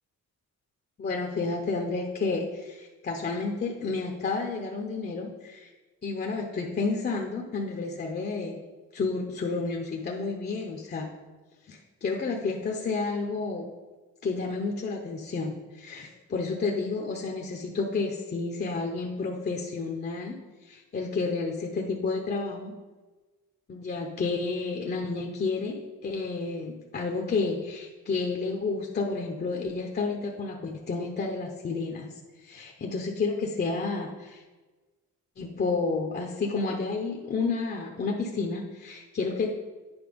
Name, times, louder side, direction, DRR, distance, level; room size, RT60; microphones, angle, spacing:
voice 1, 1.0-5.7 6.0-8.6 8.9-11.1 11.7-13.7 14.2-20.4 20.7-22.7 23.7-25.8 26.0-32.1 32.4-34.4 35.4-39.5, left 4 dB, 35° left, 1 dB, 0.8 m, -30 dB
9.8 x 4.3 x 5.2 m, 1.3 s
cardioid pair, 140°, 30 cm